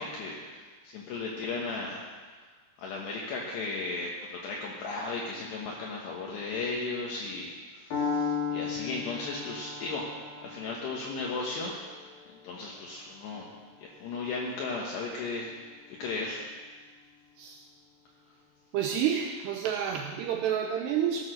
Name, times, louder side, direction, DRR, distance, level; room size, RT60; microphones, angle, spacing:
voice 1, 0.0-2.1 2.8-10.1 10.4-13.5 13.8-16.4, left 3 dB, 70° left, -3 dB, 3.2 m, -36 dB
Piano, 7.9-15.8, left 5 dB, 50° left, 3.8 m, -37 dB
voice 2, 18.7-21.2, right 9 dB, 85° right, 4 dB, 2.4 m, -29 dB
17.0 x 8.9 x 6.5 m, 1.4 s
omnidirectional pair, 5.6 m